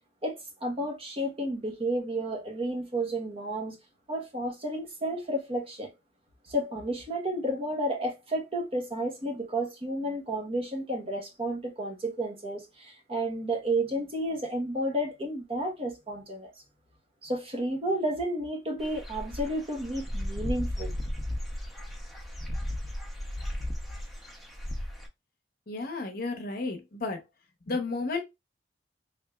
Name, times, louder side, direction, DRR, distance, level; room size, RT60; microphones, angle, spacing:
voice 1, 0.2-3.8 4.1-5.9 6.5-16.5 17.2-20.9, right 1 dB, 35° right, 1.0 m, -31 dB
Dog / Bird, 18.8-25.1, left 1 dB, ahead, 0.7 m, -35 dB
voice 2, 25.7-27.2 27.7-28.2, left 3 dB, 55° left, 0.9 m, -32 dB
3.5 x 3.5 x 2.3 m
head